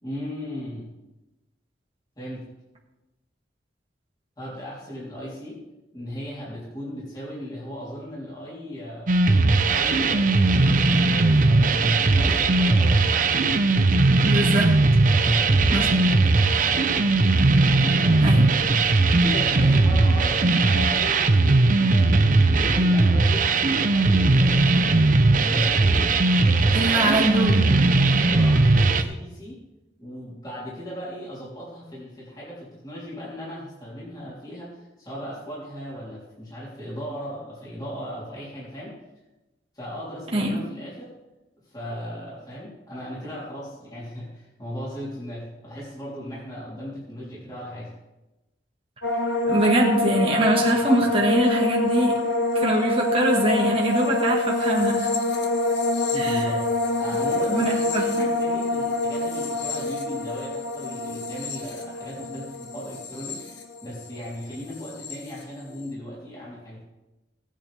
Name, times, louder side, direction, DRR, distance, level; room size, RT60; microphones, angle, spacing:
voice 1, 0.0-0.9 2.2-2.5 4.4-5.6 5.9-9.2 9.6-13.3 15.1-17.1 17.7-18.5 19.0-22.2 22.5-25.1 25.3-26.0 26.4-29.6 30.0-39.0 39.7-41.1 41.7-47.9 55.9-63.5 63.8-66.8, equal, 25° left, -7 dB, 3.5 m, -37 dB
sound 1, 9.1-29.0, right 3 dB, 50° right, 0.7 m, -19 dB
voice 2, 14.2-14.7 15.7-16.0 18.2-18.5 26.7-27.6 40.3-40.6 49.5-52.2 52.5-55.1 56.1-56.5 57.4-58.3, right 1 dB, 30° right, -2 dB, 1.7 m, -23 dB
sound 2, 49.0-64.2 64.5-65.2, left 2 dB, 80° left, 1.6 m, -26 dB
18.0 x 8.7 x 3.5 m, 1.0 s
head